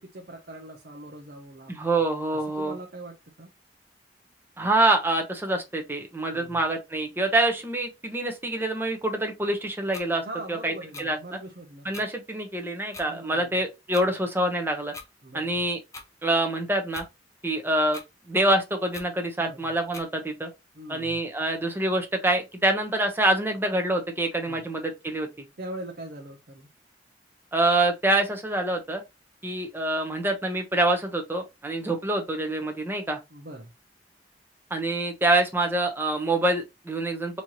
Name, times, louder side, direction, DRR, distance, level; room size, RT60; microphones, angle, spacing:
voice 1, 0.0-1.7 2.5-3.5 6.3-6.6 10.2-12.0 13.1-13.6 15.2-15.6 19.4-19.7 20.7-21.2 24.5-24.6 25.6-26.7 33.3-33.7, right 1 dB, 55° right, 0.8 m, -41 dB
voice 2, 1.7-2.8 4.6-11.2 11.8-14.9 15.3-15.8 16.2-17.0 17.4-18.0 18.3-20.5 20.9-25.3 27.5-29.0 29.4-33.2 34.7-37.4, right 2 dB, 15° right, 0.9 m, -26 dB
sound 1, 9.9-10.1 10.9-11.1 11.9-12.1 12.9-13.1 13.9-14.1 14.9-15.1 15.9-16.1 16.9-17.1 17.9-18.1 18.9-19.1 19.9-20.1, left 3 dB, 15° left, 0.7 m, -41 dB
4.3 x 3.0 x 2.9 m
head